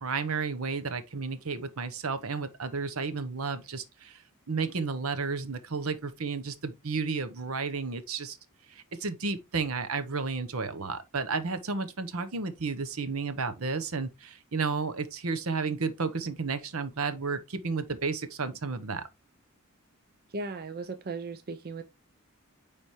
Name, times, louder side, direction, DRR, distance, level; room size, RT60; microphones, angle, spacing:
voice 1, 0.0-4.2 4.5-8.4 8.7-19.0, right 4 dB, 75° right, 0.9 m, -32 dB
voice 2, 20.3-21.8, right 3 dB, 45° right, 0.5 m, -37 dB
9.6 x 3.5 x 3.0 m
head